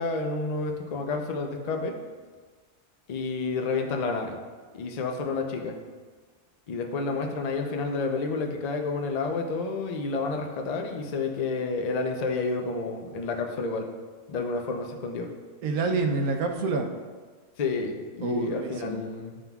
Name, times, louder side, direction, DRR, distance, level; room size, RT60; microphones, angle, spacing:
voice 1, 0.0-2.0 3.1-4.4 4.7-5.8 6.7-13.9 14.3-15.3 17.6-19.4, left 3 dB, 65° left, 3 dB, 0.4 m, -30 dB
voice 2, 15.6-16.9 18.2-19.0, right 3 dB, 90° right, 4 dB, 1.1 m, -27 dB
11.0 x 3.8 x 2.3 m, 1.4 s
omnidirectional pair, 1.5 m